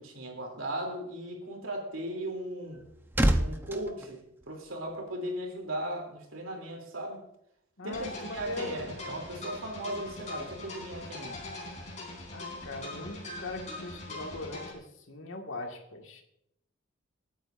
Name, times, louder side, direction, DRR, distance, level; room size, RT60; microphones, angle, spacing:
voice 1, 0.0-2.8 3.3-7.2 7.8-11.4, right 1 dB, 75° right, 3.0 m, -37 dB
sound 1, 2.4-5.1 5.4-5.6, right 1 dB, 10° right, 0.7 m, -30 dB
voice 2, 7.8-9.0 12.3-16.2, left 2 dB, 70° left, 1.8 m, -40 dB
sound 2, 7.9-14.7, left 2 dB, 35° left, 3.9 m, -42 dB
25.5 x 9.1 x 2.5 m
head